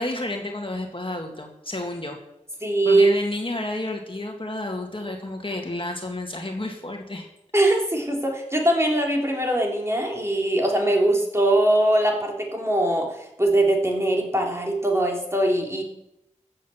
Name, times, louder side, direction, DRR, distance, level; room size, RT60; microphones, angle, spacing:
voice 1, 0.0-2.2 2.8-7.3, left 2 dB, 40° left, 2 dB, 2.1 m, -31 dB
voice 2, 2.6-3.1 7.5-15.8, right 1 dB, 20° right, 0 dB, 3.4 m, -21 dB
14.5 x 7.8 x 7.1 m, 0.83 s
wide cardioid pair, 40°, 13 cm